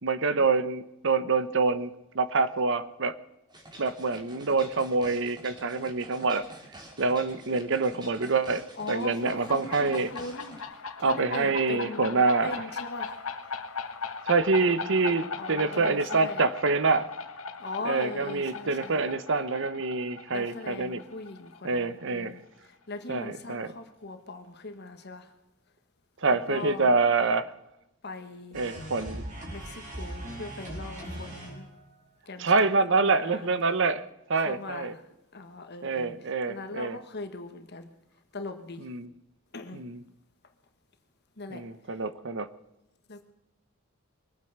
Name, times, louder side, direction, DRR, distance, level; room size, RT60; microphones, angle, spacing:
voice 1, 0.0-3.1 3.8-6.4 7.0-10.1 11.0-12.5 14.2-17.1 17.8-21.0 21.6-22.3 23.1-23.7 26.2-27.5 28.5-29.2 32.4-34.0 34.3-34.9 35.8-37.0 38.8-39.1 39.7-40.0 41.5-42.5, right 4 dB, 60° right, 13 dB, 1.0 m, -26 dB
sound 1, 3.5-10.6, right 1 dB, 20° right, 2.9 m, -48 dB
voice 2, 8.7-13.3 15.4-16.5 17.6-19.1 20.3-25.3 26.3-27.0 28.0-28.8 29.5-31.7 32.2-33.5 34.4-35.0 35.3-36.1 36.5-37.9 38.3-38.9 39.5-39.8 41.4-42.0 43.1-43.3, left 3 dB, 50° left, 7 dB, 1.5 m, -40 dB
sound 2, 9.1-22.5, left 4 dB, 75° left, 1.5 m, -39 dB
sound 3, 28.5-31.9, right 1 dB, 40° right, 4.6 m, -39 dB
23.0 x 9.2 x 6.6 m, 0.91 s
head